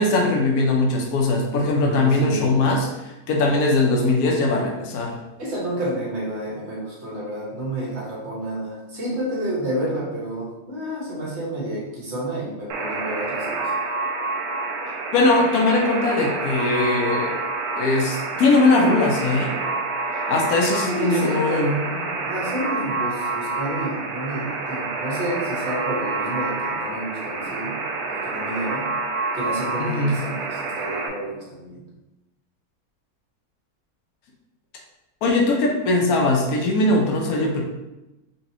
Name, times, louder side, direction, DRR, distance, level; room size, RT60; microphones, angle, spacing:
voice 1, 0.0-5.1 15.1-17.3 17.8-19.5 20.3-21.8 29.8-30.2 35.2-37.6, left 2 dB, 80° left, 0 dB, 1.2 m, -20 dB
voice 2, 1.7-2.6 5.4-13.8 20.9-21.7 22.2-27.8 28.1-28.9 29.3-31.8, right 1 dB, 50° right, -5 dB, 1.4 m, -30 dB
Alarm, 12.7-31.1, right 3 dB, 80° right, 1.1 m, -28 dB
3.9 x 3.1 x 2.8 m, 0.97 s
omnidirectional pair, 1.6 m